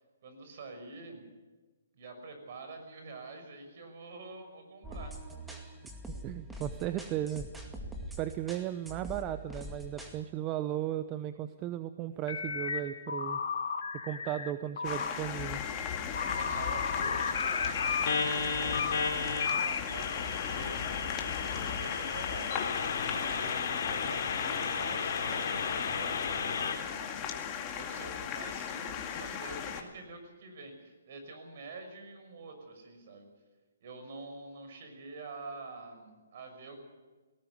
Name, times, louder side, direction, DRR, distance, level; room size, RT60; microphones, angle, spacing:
voice 1, 0.2-1.2 1.9-5.1 6.9-7.0 16.0-21.1 21.6-22.7 23.1-27.3 27.7-33.2 33.8-36.8, right 3 dB, 50° right, 6 dB, 6.1 m, -47 dB
sound 1, 4.8-10.2, right 1 dB, 5° right, 2.2 m, -44 dB
voice 2, 6.2-7.5 8.2-13.4 14.0-15.6, right 12 dB, 25° right, 11 dB, 0.8 m, -35 dB
sound 2, 12.3-12.8 13.1-14.5 14.8-15.1 15.5-26.8, left 5 dB, 60° left, 3.6 m, -33 dB
sound 3, 14.8-29.8, left 8 dB, 25° left, 2.2 m, -37 dB
18.5 x 18.0 x 8.3 m, 1.3 s
hypercardioid pair, 150°, 0 cm